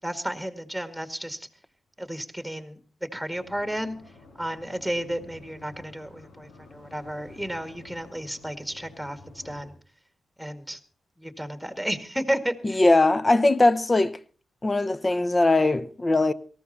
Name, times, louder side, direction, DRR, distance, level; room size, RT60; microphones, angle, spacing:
voice 1, 0.0-1.5 2.0-2.8 3.1-4.0 4.4-9.7 10.4-10.8 11.2-12.8, equal, ahead, 2.0 m, -32 dB
sound 1, 3.3-9.7, left 2 dB, 90° left, 2.7 m, -50 dB
voice 2, 12.6-14.2 14.6-16.3, left 2 dB, 30° left, 0.9 m, -20 dB
18.5 x 14.0 x 4.2 m
cardioid pair, 55°, 0 cm